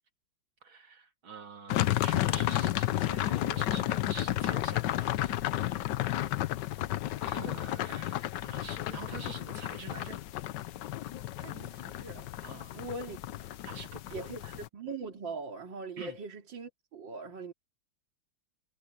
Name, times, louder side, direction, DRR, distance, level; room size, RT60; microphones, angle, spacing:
voice 1, 0.6-5.4 6.6-6.9 7.2-10.2 12.4-12.8 13.6-14.6 16.0-16.2, right 5 dB, 85° right, 3.9 m, -47 dB
sound 1, 1.7-14.7, left 14 dB, 70° left, 1.2 m, -32 dB
voice 2, 11.4-12.3 12.7-13.2 14.1-17.5, right 3 dB, 70° right, 3.3 m, -41 dB
omnidirectional pair, 2.1 m